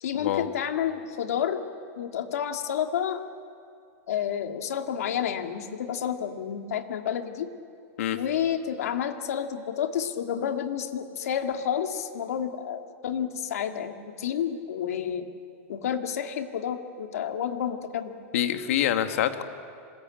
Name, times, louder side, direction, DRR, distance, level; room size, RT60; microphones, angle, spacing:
voice 1, 0.0-1.6 2.0-3.2 4.1-7.5 8.1-15.3 15.7-18.1, left 9 dB, 85° left, 5 dB, 2.4 m, -30 dB
voice 2, 18.3-19.4, left 11 dB, 60° left, 7 dB, 1.8 m, -25 dB
26.0 x 21.5 x 9.1 m, 2.4 s
supercardioid pair, 170°, 8 cm